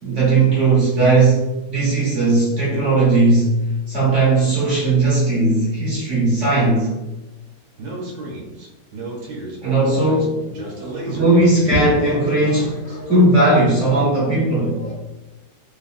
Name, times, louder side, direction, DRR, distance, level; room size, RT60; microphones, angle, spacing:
voice 1, 0.0-3.5 3.9-6.9 9.6-10.5 11.1-14.8, right 2 dB, 50° right, -7 dB, 1.1 m, -17 dB
Speech, 7.8-13.0, right 2 dB, 70° right, 1.4 m, -33 dB
voice 2, 10.7-11.2 12.9-13.1 14.6-14.9, left 1 dB, 65° left, -1 dB, 1.0 m, -38 dB
3.0 x 2.4 x 2.4 m, 1.0 s
omnidirectional pair, 1.8 m